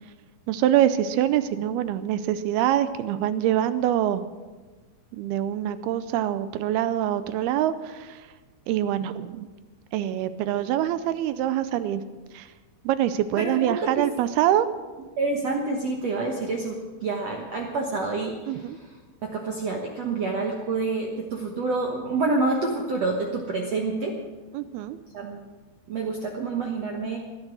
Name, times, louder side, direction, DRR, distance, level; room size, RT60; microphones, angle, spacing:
voice 1, 0.5-4.2 5.1-8.2 8.7-9.5 9.9-12.0 12.3-12.5 12.9-14.7 18.5-18.8 24.5-25.0, right 11 dB, 80° right, 13 dB, 2.4 m, -25 dB
voice 2, 13.4-14.1 15.2-18.9 19.2-24.1 25.1-25.4 25.9-27.2, right 3 dB, 65° right, 1 dB, 1.6 m, -28 dB
17.5 x 12.0 x 6.2 m, 1.3 s
omnidirectional pair, 4.8 m